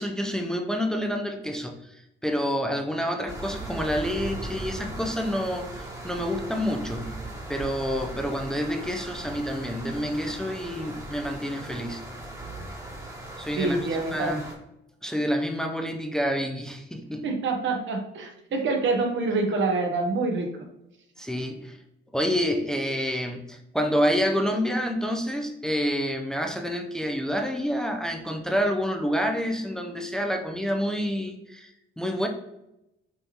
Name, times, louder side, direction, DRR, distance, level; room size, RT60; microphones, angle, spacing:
voice 1, 0.0-7.2 7.5-12.0 13.4-13.8 14.1-14.5 15.0-17.3 21.2-21.8 22.1-32.3, equal, 5° left, 3 dB, 0.6 m, -28 dB
sound 1, 3.3-14.5, right 1 dB, 15° right, 1.3 m, -38 dB
voice 2, 13.6-14.4 17.2-20.5, right 3 dB, 70° right, 3 dB, 1.0 m, -26 dB
5.6 x 2.6 x 2.9 m, 0.87 s
cardioid pair, 90°, 20 cm